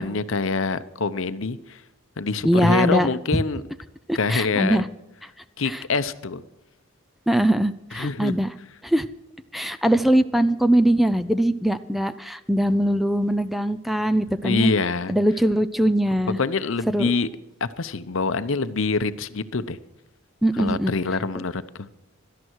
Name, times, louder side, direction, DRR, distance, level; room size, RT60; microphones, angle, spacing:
voice 1, 0.0-1.8 2.2-3.6 4.1-4.8 5.6-6.4 7.9-8.3 14.4-15.2 16.4-17.3 17.6-19.8 20.6-21.9, left 4 dB, 65° left, 13 dB, 0.8 m, -25 dB
voice 2, 2.4-3.4 4.1-4.9 5.7-5.8 7.3-8.5 8.8-9.1 9.5-14.7 15.1-16.4 16.9-17.1 20.4-20.9, right 1 dB, ahead, 12 dB, 0.5 m, -21 dB
17.5 x 12.5 x 4.6 m, 0.94 s
head